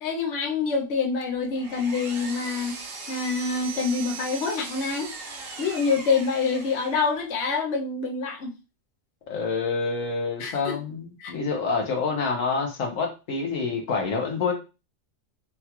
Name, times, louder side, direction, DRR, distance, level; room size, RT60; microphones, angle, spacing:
voice 1, 0.0-2.7 3.1-5.1 5.6-8.5 10.4-10.8 11.2-11.3, left 4 dB, 65° left, 1 dB, 0.9 m, -26 dB
Power tool, 1.2-7.3, right 4 dB, 55° right, 0.8 m, -39 dB
voice 2, 9.3-14.5, left 4 dB, 85° left, 2 dB, 1.2 m, -27 dB
3.6 x 2.3 x 2.8 m, 0.30 s
omnidirectional pair, 1.3 m